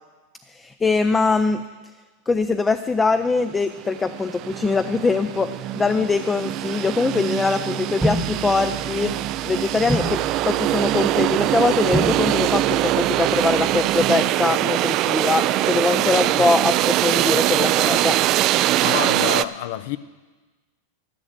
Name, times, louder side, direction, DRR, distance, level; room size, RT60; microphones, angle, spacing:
voice 1, 0.5-1.6 2.3-9.2 9.4-18.2, left 4 dB, 15° left, 0.4 m, -22 dB
sound 1, 3.5-3.6 3.8-19.4, right 15 dB, 45° right, 0.3 m, -22 dB
sound 2, 8.0-14.1, right 1 dB, 5° right, 1.1 m, -31 dB
voice 2, 18.8-20.0, left 13 dB, 65° left, 0.6 m, -27 dB
13.5 x 6.3 x 8.1 m
hypercardioid pair, 110°, 0 cm